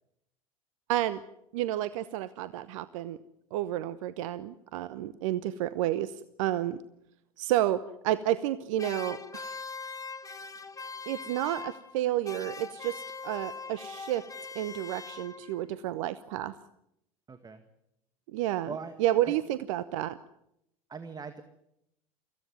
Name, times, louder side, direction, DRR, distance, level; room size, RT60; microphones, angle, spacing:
voice 1, 0.9-1.2 1.5-3.2 3.5-6.8 7.4-9.6 11.1-14.3 14.5-16.6 18.3-18.7 19.0-20.2, right 13 dB, 65° right, 15 dB, 0.9 m, -30 dB
sound 1, 8.8-12.0 12.2-15.6, left 4 dB, 20° left, 1.8 m, -41 dB
voice 2, 17.3-17.6 18.7-19.0 19.2-19.4 20.9-21.4, right 5 dB, 20° right, 9 dB, 1.8 m, -40 dB
24.5 x 16.0 x 9.5 m, 0.80 s
hypercardioid pair, 75°, 18 cm